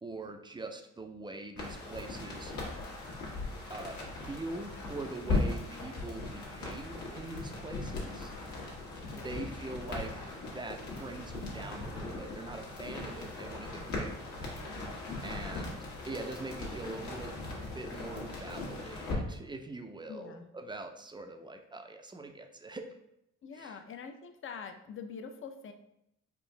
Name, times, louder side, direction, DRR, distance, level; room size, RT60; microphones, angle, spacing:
voice 1, 0.0-2.5 3.7-8.3 9.1-14.5 15.2-15.8 16.1-17.4 17.7-22.9 23.5-23.8, right 2 dB, 15° right, 5 dB, 0.4 m, -43 dB
sound 1, 1.6-19.1, left 2 dB, 70° left, 1.3 m, -39 dB
voice 2, 15.1-15.6 20.1-20.5 23.4-25.7, left 6 dB, 45° left, 7 dB, 0.5 m, -45 dB
4.5 x 2.5 x 3.2 m, 0.81 s
cardioid pair, 90°, 30 cm